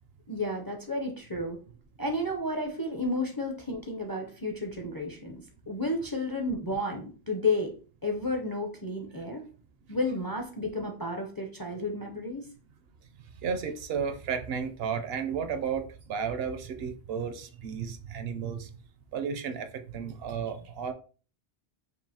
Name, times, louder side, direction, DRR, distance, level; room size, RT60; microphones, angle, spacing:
voice 1, 0.3-1.6 2.0-7.7 8.0-9.5 9.9-12.5, left 2 dB, 30° left, 0.4 m, -32 dB
voice 2, 13.4-18.7 19.1-20.9, right 6 dB, 70° right, 0.8 m, -33 dB
5.3 x 2.5 x 2.8 m
omnidirectional pair, 1.1 m